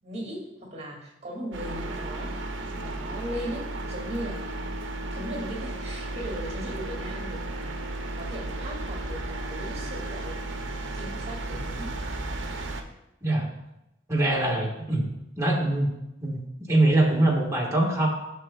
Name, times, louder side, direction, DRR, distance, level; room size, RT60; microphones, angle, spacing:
voice 1, 0.0-2.4 2.7-4.6 5.1-10.4 10.9-11.9, equal, 35° right, -2 dB, 2.2 m, -38 dB
sound 1, 1.5-12.8, right 2 dB, 65° right, 0.7 m, -34 dB
voice 2, 14.1-15.1 15.4-15.9 16.2-16.4 16.7-18.1, right 1 dB, 15° right, -4 dB, 1.4 m, -23 dB
10.5 x 6.5 x 2.3 m, 0.88 s
head